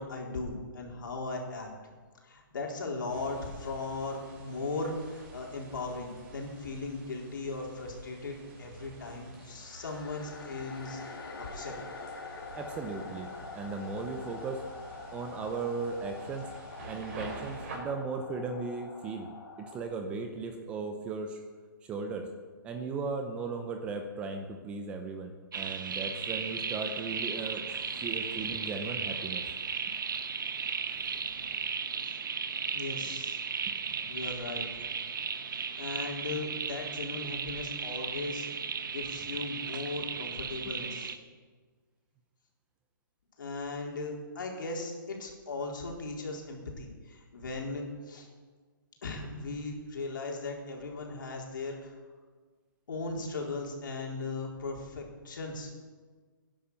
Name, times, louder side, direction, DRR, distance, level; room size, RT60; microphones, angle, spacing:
voice 1, 0.0-1.7 2.2-11.8 27.9-28.0 31.1-31.5 32.0-32.2 32.7-33.4 34.1-34.7 35.8-38.5 38.9-41.1 43.4-48.3 49.0-51.9 52.9-55.7, left 3 dB, 65° left, 0 dB, 4.1 m, -38 dB
sound 1, 3.1-17.8, right 1 dB, 40° right, 5.1 m, -49 dB
sound 2, 9.3-19.8, left 3 dB, 85° left, 2.7 m, -45 dB
voice 2, 12.5-13.3 13.5-14.6 15.1-16.5 16.9-19.3 19.6-21.4 21.8-22.3 22.6-27.6 28.0-29.4 31.0-31.1 33.7-33.8, right 4 dB, 10° right, 5 dB, 0.7 m, -37 dB
sound 3, 25.5-41.2, right 6 dB, 65° right, 1.3 m, -35 dB
16.5 x 10.5 x 7.0 m, 1.5 s
hypercardioid pair, 170°, 12 cm